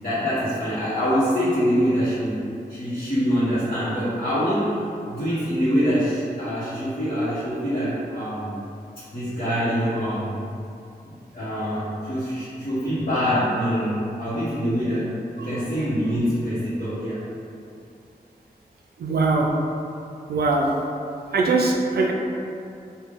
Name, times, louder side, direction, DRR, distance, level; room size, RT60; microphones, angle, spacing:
voice 1, 0.0-2.4 2.7-4.8 5.1-8.5 9.1-10.4 11.0-15.1 15.3-17.2, equal, 60° left, -15 dB, 1.1 m, -24 dB
voice 2, 19.0-19.5 20.3-20.7 21.3-22.1, right 3 dB, 85° right, 1 dB, 0.4 m, -21 dB
3.5 x 2.2 x 3.5 m, 2.6 s
cardioid pair, 45°, 16 cm